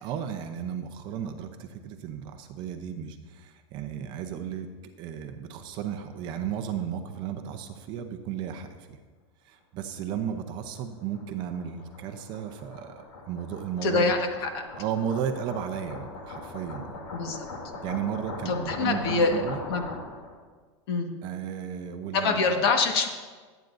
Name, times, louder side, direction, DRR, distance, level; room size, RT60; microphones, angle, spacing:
voice 1, 0.0-4.7 5.0-9.0 9.4-14.1 14.8-17.0 17.8-19.6 21.2-22.4, right 8 dB, 30° right, 6 dB, 0.7 m, -34 dB
sound 1, 10.4-20.3, left 2 dB, 85° left, 2.8 m, -41 dB
voice 2, 13.8-14.5 17.1-17.4 18.4-19.4 19.7-19.9 20.9-21.1 22.1-23.1, left 4 dB, 50° left, 4 dB, 1.5 m, -25 dB
24.0 x 9.2 x 2.6 m, 1.4 s
supercardioid pair, 170°, 16 cm